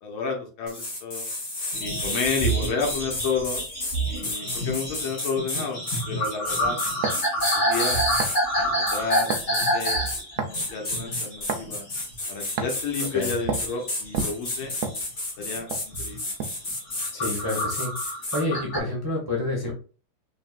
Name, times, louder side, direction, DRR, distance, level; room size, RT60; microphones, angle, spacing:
voice 1, 0.0-1.3 1.8-3.6 4.1-6.8 7.1-7.2 7.5-8.1 8.6-10.0 10.4-11.8 12.3-15.0 15.4-16.3, left 4 dB, 75° left, 2 dB, 1.8 m, -31 dB
sound 1, 0.7-8.4 8.9-10.2 10.5-18.4, left 2 dB, 35° left, 1.2 m, -32 dB
sound 2, 1.7-12.2 12.4-13.1 13.4-14.9 15.4-15.6 15.9-16.2 16.7-18.8, right 1 dB, 50° left, 2.5 m, -28 dB
sound 3, 7.0-7.3 8.2-8.4 9.3-9.5 10.4-10.7 11.5-11.7 12.6-12.8 13.5-13.7 14.1-15.4 15.7-15.9 16.4-16.7, right 5 dB, 80° right, 0.7 m, -29 dB
voice 2, 17.1-17.9 18.3-19.7, left 2 dB, 25° right, -3 dB, 0.5 m, -28 dB
5.1 x 2.9 x 2.4 m, 0.37 s
omnidirectional pair, 2.3 m